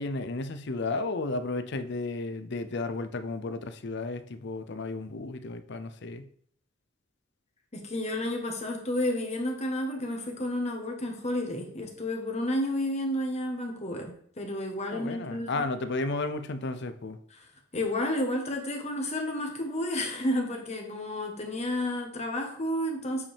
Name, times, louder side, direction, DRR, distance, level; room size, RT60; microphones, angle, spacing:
voice 1, 0.0-6.3 14.9-17.2, left 3 dB, 60° left, 11 dB, 0.6 m, -33 dB
voice 2, 7.7-15.6 17.4-17.5 17.7-23.2, left 1 dB, 35° left, 2 dB, 1.4 m, -31 dB
8.3 x 5.3 x 3.5 m, 0.62 s
head